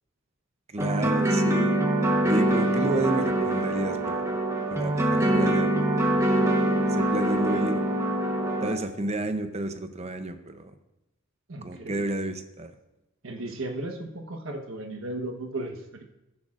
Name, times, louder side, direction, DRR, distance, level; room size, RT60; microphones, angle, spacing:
voice 1, 0.7-1.8 2.2-4.3 4.7-5.7 6.0-6.1 6.9-7.8 8.6-10.7 11.6-12.7, right 2 dB, 30° right, 8 dB, 0.7 m, -31 dB
sound 1, 0.8-8.7, right 1 dB, 15° right, 1.1 m, -24 dB
voice 2, 11.5-12.1 13.2-16.0, right 2 dB, 65° right, 5 dB, 1.2 m, -35 dB
14.5 x 10.5 x 2.5 m, 0.96 s
head